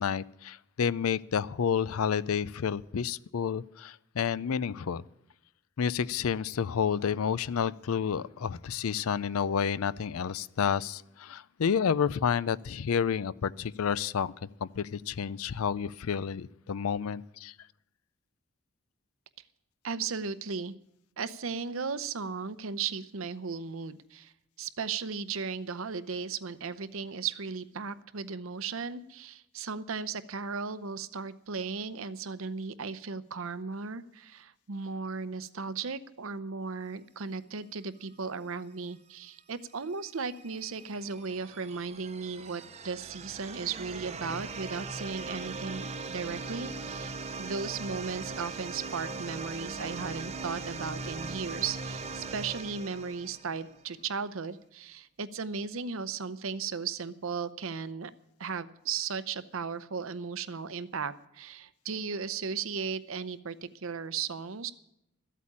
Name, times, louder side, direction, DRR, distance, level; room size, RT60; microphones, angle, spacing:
voice 1, 0.0-5.0 5.8-14.3 14.6-17.5, left 7 dB, 90° left, 0.5 m, -30 dB
voice 2, 19.8-20.8 21.2-24.3 24.6-58.1 58.4-64.7, right 5 dB, 75° right, 0.7 m, -36 dB
sound 1, 40.0-53.8, right 3 dB, 30° right, 0.8 m, -40 dB
13.5 x 8.4 x 8.6 m
head